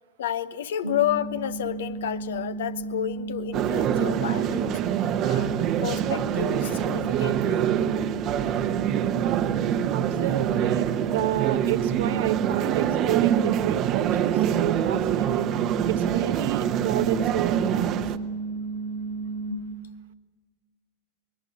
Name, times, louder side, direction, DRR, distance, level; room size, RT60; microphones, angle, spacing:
voice 1, 0.2-4.8 5.2-7.7, left 11 dB, 60° left, 0.9 m, -31 dB
sound 1, 0.8-19.5, right 3 dB, 90° right, 6.7 m, -34 dB
sound 2, 3.5-18.2, right 10 dB, 35° right, 1.1 m, -25 dB
voice 2, 9.9-15.5 15.9-18.0, right 13 dB, 55° right, 1.0 m, -30 dB
25.0 x 21.0 x 8.6 m
figure-of-eight pair, 90°, 0 cm